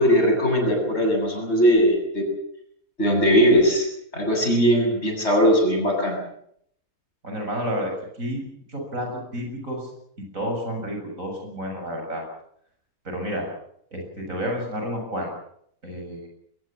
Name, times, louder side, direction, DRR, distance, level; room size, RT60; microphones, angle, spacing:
voice 1, 0.0-2.3 3.0-3.9 4.1-6.2, equal, 50° left, 2 dB, 7.9 m, -19 dB
voice 2, 7.2-9.9 10.2-12.2 13.0-13.5 13.9-15.3 15.8-16.3, equal, 65° right, 2 dB, 7.7 m, -30 dB
22.0 x 20.0 x 7.4 m, 0.69 s
omnidirectional pair, 1.5 m